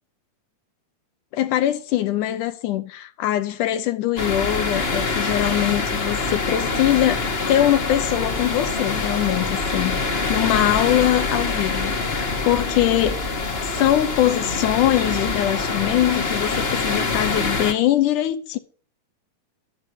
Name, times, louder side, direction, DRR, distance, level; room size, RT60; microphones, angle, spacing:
voice 1, 1.3-13.2 13.6-18.6, left 13 dB, 80° left, 2.4 m, -22 dB
sound 1, 4.2-17.7, left 3 dB, 40° left, 0.8 m, -25 dB
12.0 x 8.9 x 8.2 m
omnidirectional pair, 3.6 m